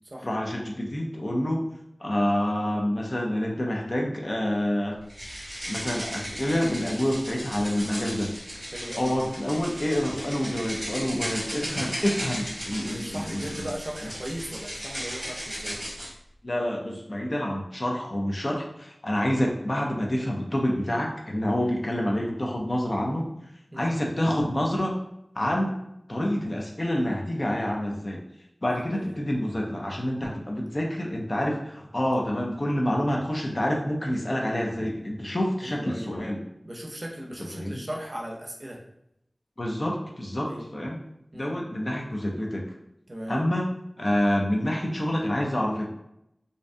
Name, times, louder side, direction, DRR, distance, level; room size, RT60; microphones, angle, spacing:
voice 1, 0.2-1.6 2.0-5.0 5.7-8.6 9.0-13.7 16.4-23.2 23.8-24.9 25.4-25.8 26.1-28.2 28.6-36.4 37.5-37.8 39.6-41.0 41.3-42.6 43.3-43.7 44.0-45.9, left 1 dB, 45° left, 0 dB, 0.4 m, -27 dB
sound 1, 5.1-16.1, equal, 30° right, 0.9 m, -36 dB
voice 2, 8.7-9.1 12.8-15.9 21.6-21.7 23.7-23.9 28.7-29.1 35.6-36.1 36.6-38.8 40.4-40.7 41.3-41.5 43.1-43.4, equal, 45° right, -2 dB, 0.5 m, -37 dB
2.6 x 2.2 x 2.5 m, 0.80 s
wide cardioid pair, 55°, 0 cm